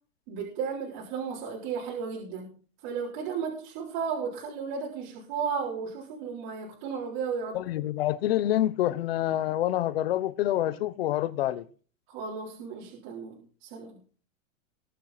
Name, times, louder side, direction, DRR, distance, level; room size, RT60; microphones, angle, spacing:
voice 1, 0.3-2.5 2.8-7.6 12.1-14.0, right 6 dB, 35° right, 3.9 m, -34 dB
voice 2, 7.5-11.6, left 13 dB, 45° left, 1.1 m, -27 dB
21.0 x 7.5 x 4.2 m
supercardioid pair, 180°, 41 cm